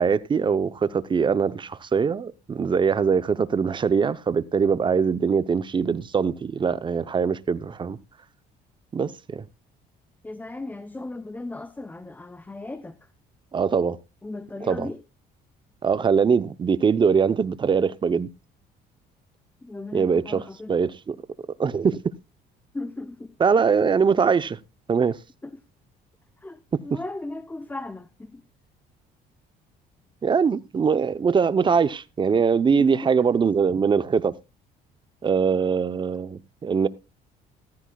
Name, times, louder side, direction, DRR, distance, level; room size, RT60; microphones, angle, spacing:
voice 1, 0.0-8.0 8.9-9.5 13.5-14.0 14.6-14.9 15.8-18.3 19.9-21.2 21.6-22.1 23.4-24.6 24.9-25.2 26.7-27.0 30.2-34.3 35.2-36.9, right 6 dB, 30° right, 0.7 m, -22 dB
voice 2, 10.2-13.0 14.2-15.0 19.6-20.7 22.7-23.3 26.4-28.4 32.8-32.9, left 2 dB, 10° left, 0.7 m, -36 dB
14.5 x 14.0 x 2.3 m
cardioid pair, 110°, 17 cm